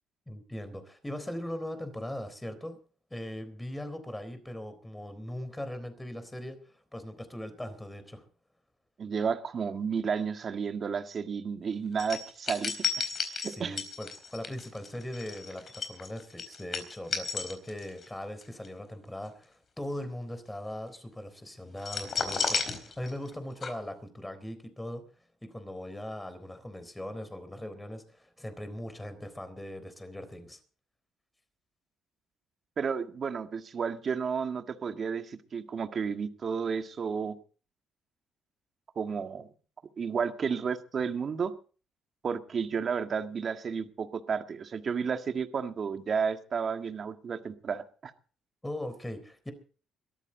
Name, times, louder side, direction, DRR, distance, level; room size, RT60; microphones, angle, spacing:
voice 1, 0.3-2.8 3.1-8.2 13.4-25.0 25.4-30.6 48.6-49.5, left 1 dB, 10° left, 10 dB, 3.8 m, -40 dB
voice 2, 9.0-13.8 32.8-37.4 39.0-39.5 40.0-41.5 42.2-48.1, right 6 dB, 45° right, 7 dB, 1.8 m, -32 dB
sound 1, 12.0-18.1 18.4-18.7 21.8-23.4 23.6-23.7, left 5 dB, 45° left, 4.3 m, -33 dB
22.0 x 14.0 x 4.0 m, 0.39 s
cardioid pair, 90°, 0 cm